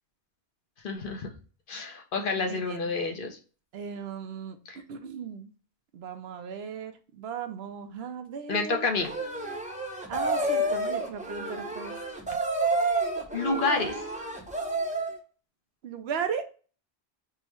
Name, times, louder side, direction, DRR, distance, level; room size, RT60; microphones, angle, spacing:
voice 1, 0.8-1.3 1.7-3.4 4.7-4.8 8.5-9.1 13.3-14.0, left 4 dB, 55° left, 3 dB, 0.8 m, -29 dB
voice 2, 2.4-2.9 3.7-5.5 5.9-8.9 10.1-12.0 15.8-16.4, right 6 dB, 70° right, 8 dB, 0.8 m, -37 dB
sound 1, 9.0-15.2, right 2 dB, 10° right, 0.5 m, -30 dB
3.5 x 2.1 x 4.3 m, 0.38 s
omnidirectional pair, 1.1 m